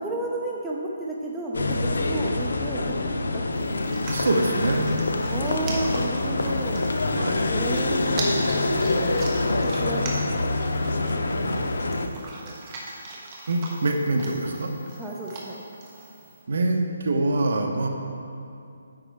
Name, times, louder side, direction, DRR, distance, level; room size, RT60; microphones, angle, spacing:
voice 1, 0.0-4.0 5.3-6.9 7.4-8.2 8.5-11.4 12.1-12.5 15.0-15.6, right 2 dB, 5° right, -4 dB, 0.5 m, -33 dB
sound 1, 1.5-12.1, left 2 dB, 85° left, 0.7 m, -25 dB
sound 2, 3.5-16.4, right 2 dB, 20° right, 1.1 m, -40 dB
voice 2, 4.1-4.9 7.0-7.5 13.5-14.7 16.5-17.9, right 2 dB, 60° right, 2 dB, 1.2 m, -25 dB
10.5 x 7.8 x 3.6 m, 2.6 s
hypercardioid pair, 175°, 0 cm